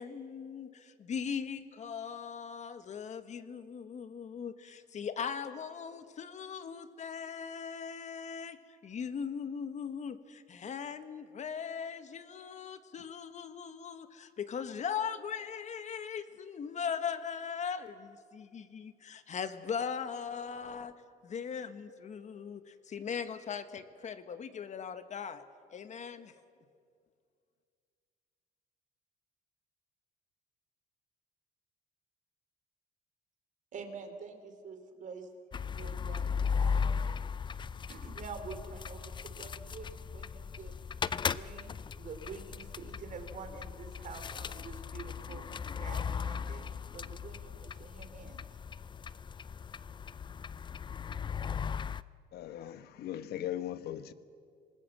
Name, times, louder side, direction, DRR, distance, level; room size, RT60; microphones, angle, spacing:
voice 1, 0.0-20.9 21.2-25.4 25.7-26.3, left 7 dB, 45° left, 11 dB, 1.5 m, -39 dB
voice 2, 33.7-35.3 35.8-37.3 37.9-40.7 41.2-46.7 46.9-48.4, right 5 dB, 50° right, 6 dB, 3.2 m, -47 dB
sound 1, 35.5-52.0, left 6 dB, 30° left, 0.5 m, -37 dB
voice 3, 52.3-54.1, left 12 dB, 70° left, 13 dB, 1.1 m, -39 dB
26.5 x 20.0 x 7.8 m, 2.2 s
cardioid pair, 110°, 17 cm